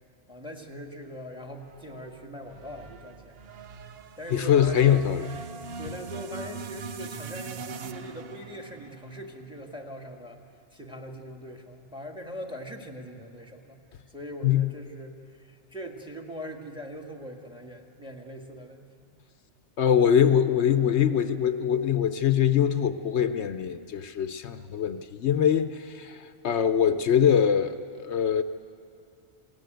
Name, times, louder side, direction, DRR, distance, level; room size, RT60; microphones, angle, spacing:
voice 1, 0.3-3.4 4.2-5.0 5.8-10.4 10.7-13.8 14.1-19.1, equal, 5° right, 3 dB, 1.6 m, -41 dB
sound 1, 1.6-9.9, right 5 dB, 60° right, 0.9 m, -42 dB
voice 2, 4.3-5.3 14.4-14.7 19.8-28.4, left 8 dB, 75° left, 10 dB, 1.0 m, -23 dB
21.0 x 17.0 x 9.1 m, 2.4 s
omnidirectional pair, 1.2 m